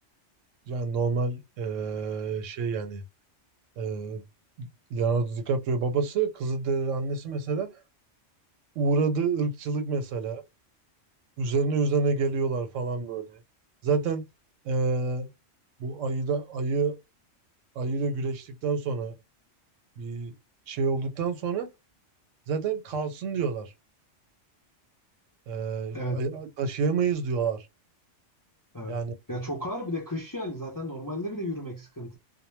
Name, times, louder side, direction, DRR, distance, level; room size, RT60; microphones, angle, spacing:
voice 1, 0.7-3.0 3.8-4.2 4.6-7.7 8.8-10.4 11.4-13.4 13.8-14.2 14.6-15.3 15.8-17.0 17.8-19.1 20.0-20.3 20.7-21.7 22.5-23.7 25.5-27.7 28.9-29.1, right 4 dB, 80° right, 1.0 m, -28 dB
voice 2, 25.9-26.2 28.7-29.0 29.3-32.2, equal, 25° left, 0.5 m, -33 dB
2.1 x 2.1 x 3.1 m
omnidirectional pair, 1.3 m